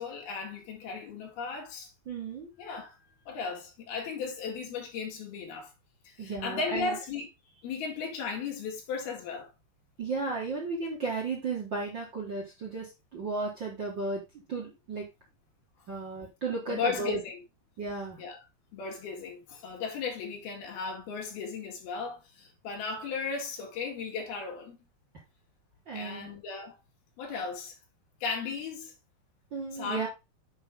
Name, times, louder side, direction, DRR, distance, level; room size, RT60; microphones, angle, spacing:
voice 1, 0.0-1.9 2.6-3.0 3.3-5.7 6.1-7.3 7.6-9.5 16.7-17.4 18.2-18.4 18.7-24.8 25.9-26.8 27.2-27.8 28.2-28.9 29.7-30.1, left 5 dB, 75° left, 4.0 m, -36 dB
voice 2, 2.0-2.5 6.2-7.0 10.0-14.2 14.5-15.1 15.9-17.2 17.8-18.2 25.9-26.3 29.5-30.1, right 4 dB, 45° right, 1.7 m, -34 dB
8.1 x 5.3 x 3.6 m
omnidirectional pair, 4.5 m